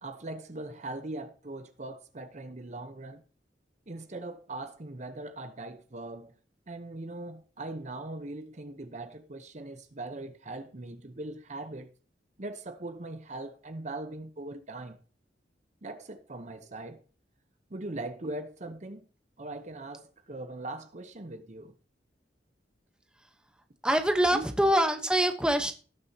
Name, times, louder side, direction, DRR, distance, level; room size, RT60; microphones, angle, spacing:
voice 1, 0.0-3.2 3.9-6.3 6.7-11.9 12.4-15.0 15.8-17.0 17.7-19.1 19.4-21.7 24.3-24.4, right 2 dB, 40° right, 0.9 m, -40 dB
voice 2, 23.8-25.7, right 1 dB, 5° right, 1.0 m, -24 dB
18.0 x 6.9 x 2.9 m
head